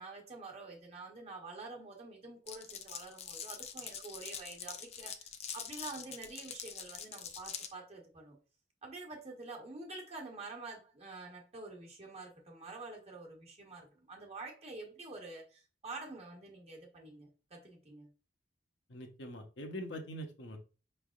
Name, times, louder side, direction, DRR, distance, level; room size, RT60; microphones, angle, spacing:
voice 1, 0.0-8.4 8.8-18.1, right 3 dB, 35° right, 1.1 m, -48 dB
Glass, 2.5-7.7, left 7 dB, 35° left, 0.4 m, -44 dB
voice 2, 18.9-20.6, equal, 80° left, 0.9 m, -43 dB
5.3 x 3.3 x 2.4 m
head